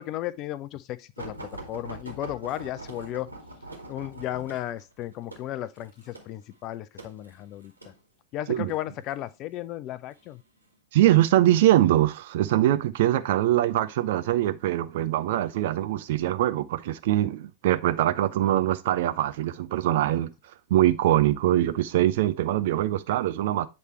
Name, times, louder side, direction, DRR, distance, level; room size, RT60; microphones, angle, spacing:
voice 1, 0.0-3.3 3.9-7.7 8.3-10.4, left 13 dB, 35° left, 0.4 m, -34 dB
sound 1, 1.2-8.0 8.7-9.2 10.1-10.8 11.5-11.7 12.1-12.2, right 1 dB, 85° right, 1.7 m, -43 dB
voice 2, 10.9-20.3 20.7-23.7, right 13 dB, 55° right, 0.5 m, -23 dB
8.1 x 3.2 x 4.3 m
figure-of-eight pair, 90°, 0 cm